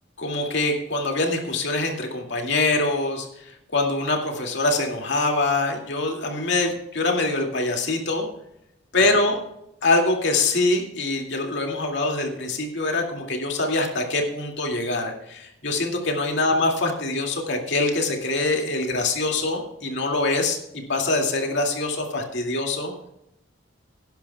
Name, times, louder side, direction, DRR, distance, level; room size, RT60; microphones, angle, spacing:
voice 1, 0.2-3.3 3.7-8.3 8.9-9.4 9.8-20.6 20.9-22.9, left 2 dB, 65° left, 2 dB, 2.3 m, -24 dB
18.0 x 10.5 x 2.3 m, 0.81 s
head